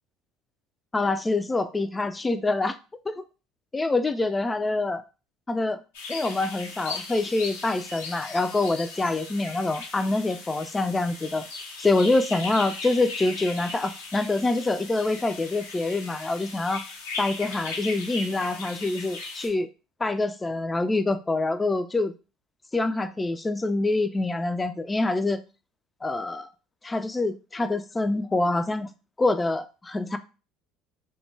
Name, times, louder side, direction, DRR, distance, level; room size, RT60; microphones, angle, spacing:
voice 1, 0.9-2.8 3.1-3.2 3.7-5.0 5.5-5.8 6.1-11.5 11.8-16.8 17.2-19.7 20.0-22.1 22.7-25.4 26.0-26.5 26.8-28.9 29.2-30.2, left 2 dB, 20° left, 11 dB, 0.3 m, -25 dB
sound 1, 5.9-19.5, left 3 dB, 80° left, 0.6 m, -38 dB
2.2 x 2.1 x 3.2 m, 0.32 s
hypercardioid pair, 65°, 0 cm